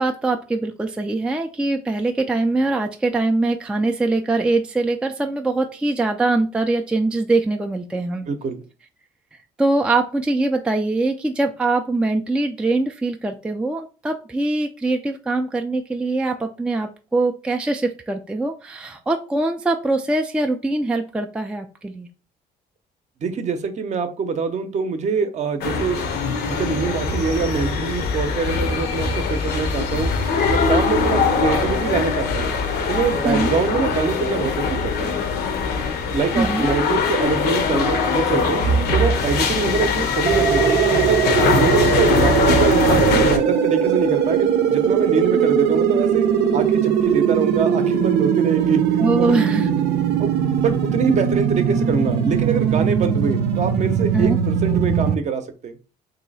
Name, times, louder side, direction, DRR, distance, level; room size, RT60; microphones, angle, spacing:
voice 1, 0.0-8.3 9.6-22.1 33.3-33.5 36.4-36.7 49.0-49.7 54.1-54.4, right 2 dB, 5° right, 4 dB, 0.3 m, -22 dB
voice 2, 8.3-8.6 23.2-26.0 26.5-30.1 30.5-32.5 32.9-35.2 36.1-38.6 38.9-41.2 41.5-46.3 46.5-49.3 50.2-50.3 50.6-55.7, right 5 dB, 45° right, 8 dB, 0.7 m, -24 dB
sound 1, 25.6-43.4, left 4 dB, 70° left, 0.8 m, -21 dB
sound 2, 40.3-55.2, right 8 dB, 85° right, 0.6 m, -20 dB
3.1 x 2.8 x 4.0 m, 0.34 s
cardioid pair, 110°, 17 cm